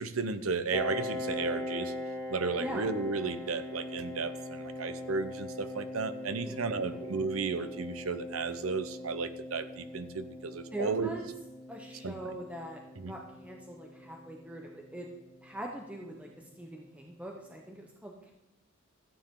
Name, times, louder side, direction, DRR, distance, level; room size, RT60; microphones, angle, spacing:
voice 1, 0.0-1.9 2.3-11.1 12.0-12.4 13.0-13.1, right 4 dB, 90° right, 12 dB, 0.8 m, -34 dB
Piano, 0.7-16.1, left 1 dB, 10° left, 2.6 m, -41 dB
voice 2, 6.4-7.0 10.7-11.3 11.7-12.8 13.1-15.1 15.4-16.3 16.6-18.3, right 1 dB, 5° right, 0 dB, 1.0 m, -42 dB
13.5 x 9.1 x 3.8 m, 0.95 s
head